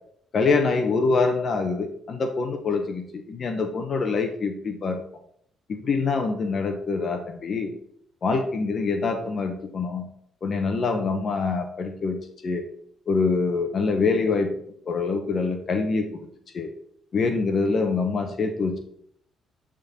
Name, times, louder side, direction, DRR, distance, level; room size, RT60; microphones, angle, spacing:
voice 1, 0.3-5.0 5.7-7.7 8.2-10.1 10.4-12.2 12.4-12.6 13.1-14.5 14.9-16.1 16.5-16.7 17.1-18.8, left 4 dB, 50° left, 6 dB, 0.9 m, -25 dB
10.5 x 3.8 x 4.2 m, 0.68 s
cardioid pair, 90°, 0 cm